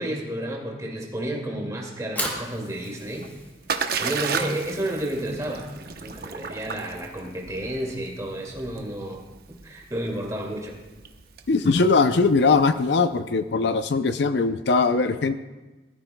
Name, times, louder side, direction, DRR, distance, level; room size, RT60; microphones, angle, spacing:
voice 1, 0.0-3.3 3.8-5.7 6.0-9.2 9.6-10.7, right 1 dB, 20° right, -1 dB, 2.2 m, -31 dB
Fire, 1.9-8.1, equal, 10° left, 1.9 m, -38 dB
Splash splatter, 3.0-12.8, right 6 dB, 55° right, 0.8 m, -34 dB
voice 2, 11.5-15.3, left 4 dB, 65° left, 10 dB, 0.5 m, -20 dB
20.0 x 13.0 x 2.2 m, 1.2 s
head